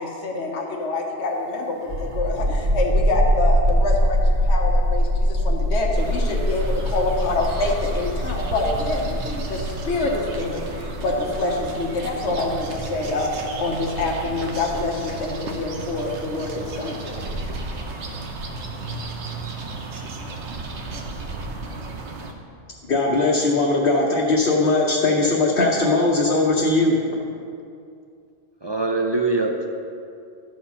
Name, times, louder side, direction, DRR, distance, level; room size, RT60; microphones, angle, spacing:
voice 1, 0.0-4.2 4.4-17.2, left 2 dB, 80° left, 0 dB, 1.3 m, -26 dB
sound 1, 1.8-15.2, equal, 55° right, 1.6 m, -23 dB
sound 2, 5.9-22.3, right 2 dB, 80° right, 1.2 m, -33 dB
voice 2, 22.8-27.0, left 2 dB, 60° left, -4 dB, 1.2 m, -19 dB
voice 3, 28.6-29.7, right 3 dB, 30° right, 1 dB, 0.5 m, -23 dB
12.5 x 4.7 x 5.7 m, 2.4 s
omnidirectional pair, 1.1 m